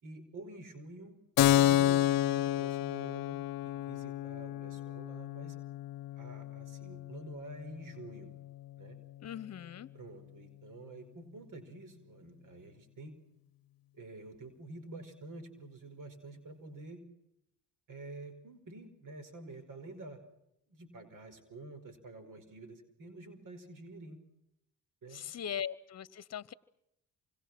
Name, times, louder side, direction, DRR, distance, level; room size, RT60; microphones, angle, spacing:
voice 1, 0.0-5.6 6.1-8.3 8.8-9.0 9.9-13.1 13.9-17.0 17.9-20.2 20.7-24.2 25.0-25.3, right 2 dB, 60° right, 10 dB, 5.2 m, -49 dB
Keyboard (musical), 1.4-8.7, left 13 dB, 70° left, 0.8 m, -31 dB
voice 2, 9.2-9.9 25.1-26.5, left 8 dB, 45° left, 19 dB, 1.1 m, -40 dB
28.0 x 25.5 x 6.1 m, 0.81 s
supercardioid pair, 70°, 36 cm